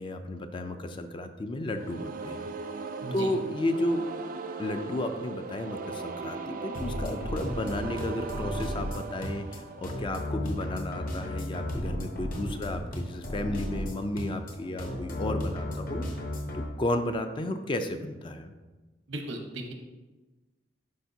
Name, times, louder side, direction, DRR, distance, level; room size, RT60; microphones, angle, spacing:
voice 1, 0.0-2.5 3.1-4.0 4.6-16.0 16.5-18.5, left 1 dB, 25° left, 7 dB, 0.4 m, -33 dB
sound 1, 1.7-10.6, right 4 dB, 45° right, 0.4 m, -39 dB
sound 2, 6.7-16.6, left 1 dB, 45° left, 0.9 m, -34 dB
voice 2, 19.1-19.7, right 1 dB, 80° right, 3 dB, 1.0 m, -36 dB
10.0 x 4.3 x 2.7 m, 1.2 s
head